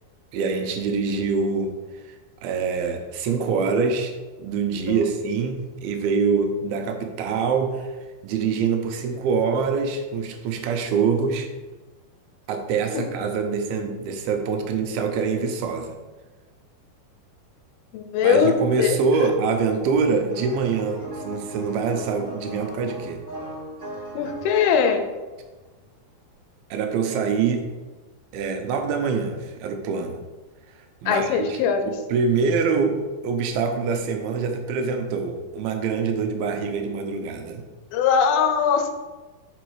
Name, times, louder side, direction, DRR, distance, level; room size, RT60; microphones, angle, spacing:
voice 1, 0.3-1.7 2.0-2.2 2.4-4.1 4.4-8.0 8.2-11.5 12.5-16.0 18.2-23.2 26.7-27.6 28.3-30.2 30.8-37.7, right 5 dB, 85° right, 5 dB, 2.6 m, -25 dB
voice 2, 17.9-19.0 24.2-25.0 31.1-31.8 37.9-38.9, left 6 dB, 85° left, 6 dB, 2.6 m, -21 dB
sound 1, 20.2-25.7 26.3-26.4, right 1 dB, 20° right, 1.5 m, -38 dB
5.5 x 5.1 x 4.7 m, 1.2 s
omnidirectional pair, 4.3 m